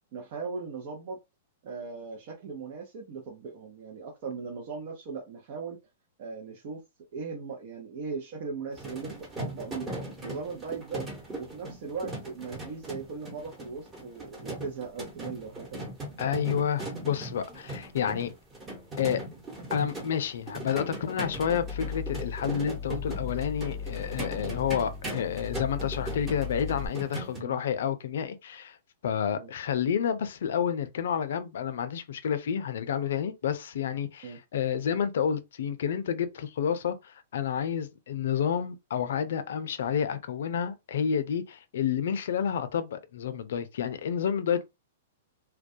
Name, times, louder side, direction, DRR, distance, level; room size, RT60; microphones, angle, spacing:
voice 1, 0.1-1.2 1.6-5.8 6.2-6.8 7.1-11.1 11.3-15.9 27.4-27.6 29.4-29.5 34.2-34.4, right 5 dB, 55° right, 0.6 m, -38 dB
sound 1, 8.7-27.4, right 1 dB, 20° right, 1.0 m, -39 dB
voice 2, 16.2-18.3 19.0-19.2 19.7-28.8 29.0-44.6, left 8 dB, 70° left, 0.4 m, -30 dB
sound 2, 21.3-26.9, left 6 dB, 10° left, 0.4 m, -37 dB
2.2 x 2.2 x 2.6 m
hypercardioid pair, 130°, 0 cm